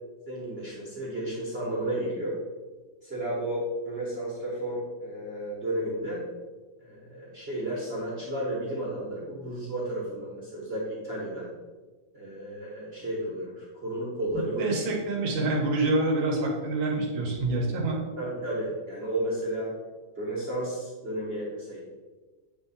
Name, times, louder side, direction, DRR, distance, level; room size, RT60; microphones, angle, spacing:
voice 1, 0.3-2.4 3.0-6.2 6.8-11.5 12.1-14.8 16.3-16.4 18.2-19.7 20.2-21.8, right 1 dB, 35° right, -5 dB, 1.3 m, -33 dB
voice 2, 14.6-18.0, right 2 dB, 80° right, -2 dB, 1.9 m, -26 dB
8.2 x 3.3 x 4.0 m, 1.3 s
omnidirectional pair, 2.1 m